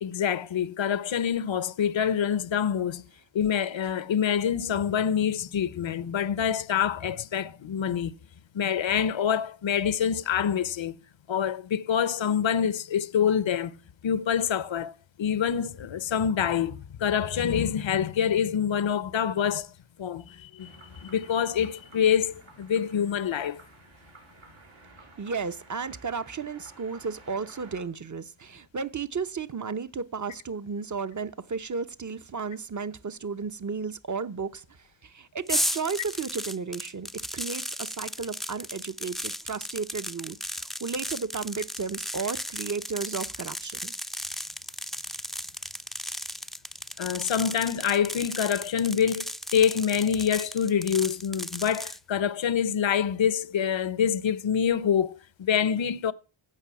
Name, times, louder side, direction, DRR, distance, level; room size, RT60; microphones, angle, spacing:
voice 1, 0.0-3.1 3.3-8.2 8.5-11.0 11.3-13.8 14.0-14.9 15.2-19.7 20.0-23.6 47.0-56.1, left 8 dB, 70° left, 0.9 m, -26 dB
sound 1, 20.6-27.8, right 3 dB, 80° right, 5.3 m, -53 dB
voice 2, 25.2-34.6 35.0-43.9, right 5 dB, 40° right, 1.0 m, -33 dB
sound 2, 35.5-52.0, equal, ahead, 0.5 m, -35 dB
16.0 x 5.5 x 8.5 m
cardioid pair, 55°, 48 cm